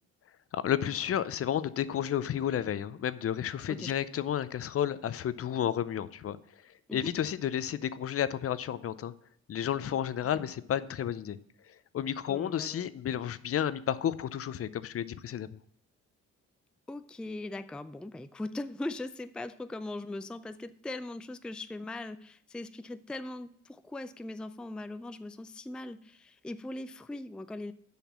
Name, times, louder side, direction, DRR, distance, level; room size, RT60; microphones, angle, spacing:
voice 1, 0.5-6.4 6.9-9.1 9.5-11.4 11.9-15.5, left 10 dB, 50° left, 16 dB, 0.6 m, -31 dB
voice 2, 10.2-10.5 12.3-12.9 16.9-27.7, left 2 dB, 5° left, 12 dB, 0.4 m, -40 dB
7.1 x 5.8 x 7.2 m, 0.68 s
cardioid pair, 90°, 30 cm